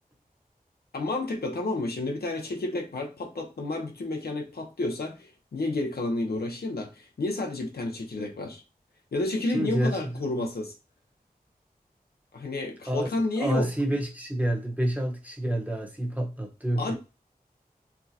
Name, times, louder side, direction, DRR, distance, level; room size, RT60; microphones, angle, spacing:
voice 1, 0.9-8.6 9.1-10.8 12.3-13.7 16.8-16.9, left 2 dB, 90° left, 0.6 m, -30 dB
voice 2, 9.5-10.2 12.9-13.1 13.4-17.0, right 1 dB, 10° right, 1.0 m, -28 dB
4.3 x 2.1 x 2.8 m
wide cardioid pair, 60°, 16 cm